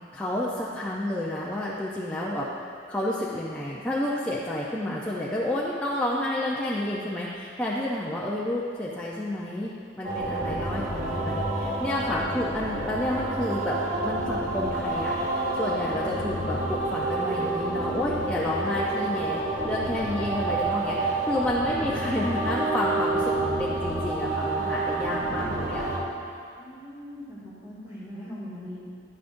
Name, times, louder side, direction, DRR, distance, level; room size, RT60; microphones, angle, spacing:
voice 1, 0.1-2.5 2.9-9.7 10.0-13.8 14.0-25.9, left 1 dB, 5° left, -7 dB, 0.6 m, -30 dB
sound 1, 10.0-26.0, right 2 dB, 40° right, 2.0 m, -28 dB
voice 2, 26.5-28.9, equal, 15° right, -10 dB, 2.2 m, -41 dB
11.0 x 10.0 x 2.6 m, 2.3 s
head